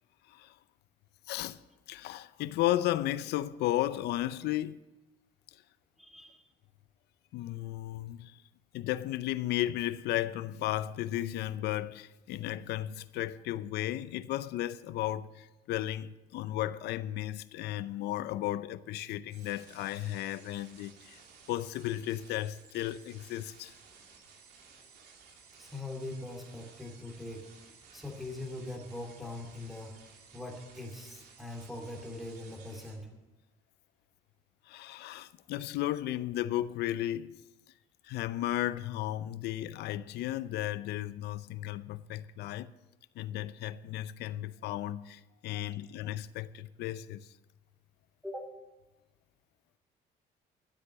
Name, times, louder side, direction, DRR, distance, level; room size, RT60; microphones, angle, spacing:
voice 1, 1.3-1.6 1.9-4.9 7.3-8.4 8.7-21.2 21.5-23.7 34.7-37.4 38.0-42.7 43.2-47.3, left 14 dB, 80° left, 0.6 m, -34 dB
voice 2, 6.0-6.5 25.6-27.5 27.9-29.9 30.3-33.1 45.5-45.7 48.2-48.5, left 2 dB, ahead, 2.8 m, -42 dB
sound 1, 19.3-33.0, right 5 dB, 75° right, 2.6 m, -56 dB
12.5 x 8.2 x 7.4 m
cardioid pair, 110°, 17 cm